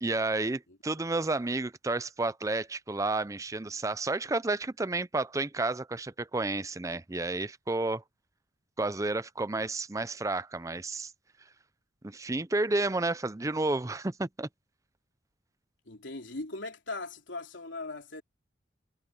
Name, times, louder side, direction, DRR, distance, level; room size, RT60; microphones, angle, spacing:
voice 1, 0.0-8.0 8.8-11.1 12.0-14.5, right 2 dB, 15° right, 0.5 m, -31 dB
voice 2, 15.9-18.2, left 2 dB, 80° left, 3.3 m, -39 dB
head